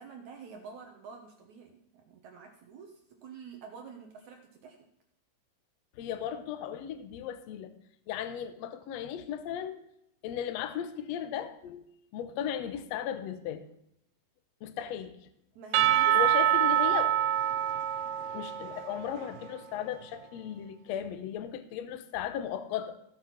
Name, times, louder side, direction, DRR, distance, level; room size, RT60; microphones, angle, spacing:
voice 1, 0.0-4.8 15.6-16.7, right 5 dB, 65° right, 3 dB, 2.2 m, -48 dB
voice 2, 6.0-7.7 8.1-9.9 10.2-11.8 12.1-13.6 14.6-15.2 16.1-17.2 18.3-23.0, left 9 dB, 75° left, 11 dB, 1.6 m, -36 dB
Percussion / Church bell, 15.7-19.7, right 11 dB, 85° right, 1.7 m, -26 dB
16.5 x 6.4 x 5.8 m, 0.77 s
omnidirectional pair, 4.2 m